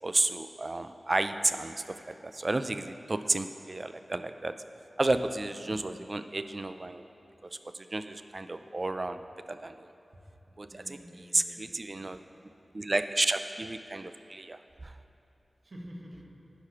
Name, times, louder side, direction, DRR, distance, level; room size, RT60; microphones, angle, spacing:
voice 1, 0.0-4.5 5.0-7.1 7.7-9.2 9.5-9.7 10.6-11.0 11.3-12.2 12.7-14.9, right 2 dB, 40° right, 10 dB, 0.4 m, -31 dB
voice 2, 5.6-6.0 10.5-12.0 15.6-16.5, equal, 60° right, -2 dB, 1.5 m, -49 dB
10.0 x 4.9 x 5.9 m, 3.0 s
wide cardioid pair, 60°, 0 cm